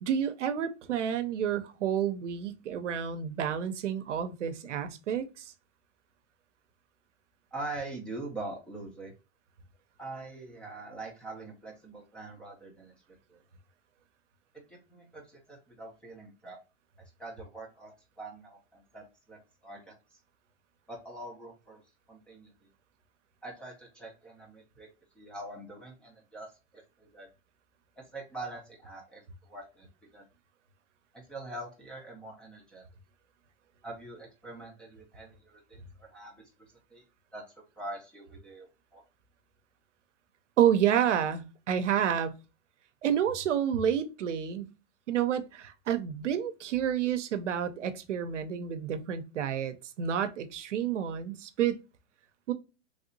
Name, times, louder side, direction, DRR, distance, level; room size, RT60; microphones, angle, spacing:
voice 1, 0.0-5.5 40.6-42.3 43.0-44.7 45.1-51.8 52.5-52.6, right 9 dB, 90° right, 0.6 m, -29 dB
voice 2, 7.5-9.1 10.0-12.9 13.3-13.4 14.7-16.6 17.2-19.9 20.9-21.8 22.1-22.5 23.4-24.9 25.2-27.3 28.0-29.9 30.1-30.2 31.1-32.8 33.8-37.0 37.3-37.4 37.8-39.0, right 2 dB, 5° left, 0.3 m, -44 dB
3.2 x 2.7 x 2.6 m
hypercardioid pair, 130°, 35 cm